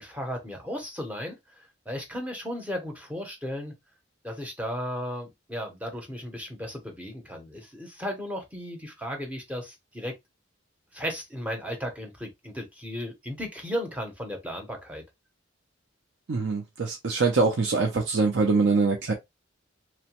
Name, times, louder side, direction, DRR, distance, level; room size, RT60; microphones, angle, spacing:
voice 1, 0.0-3.7 4.2-10.1 10.9-15.0, equal, 5° right, 0.6 m, -35 dB
voice 2, 16.3-19.1, right 4 dB, 55° right, 0.5 m, -24 dB
2.9 x 2.1 x 2.9 m
head